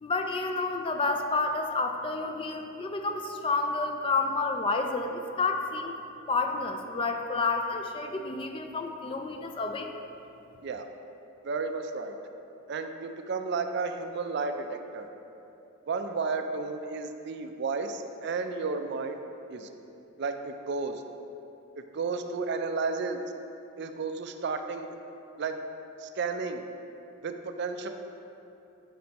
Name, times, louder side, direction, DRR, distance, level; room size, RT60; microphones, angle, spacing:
voice 1, 0.0-5.9 6.3-9.9, left 3 dB, 25° left, 5 dB, 0.4 m, -30 dB
voice 2, 11.4-12.2 12.7-15.1 15.9-19.2 19.5-19.7 20.2-21.0 21.8-23.2 23.8-24.9 25.4-25.6 26.0-26.6 27.2-27.9, right 4 dB, 55° right, 7 dB, 0.4 m, -32 dB
10.0 x 5.3 x 2.9 m, 2.8 s
head